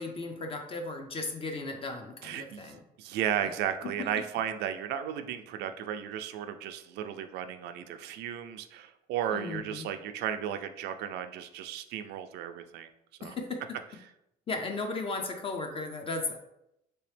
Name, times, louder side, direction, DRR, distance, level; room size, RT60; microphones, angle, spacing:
voice 1, 0.0-2.8 4.0-4.1 9.3-9.9 13.2-13.6 14.5-16.4, left 3 dB, 35° left, 4 dB, 0.5 m, -35 dB
voice 2, 2.2-12.9 13.2-13.3, right 9 dB, 80° right, 9 dB, 0.4 m, -34 dB
3.2 x 2.9 x 3.2 m, 0.82 s
cardioid pair, 110°, 17 cm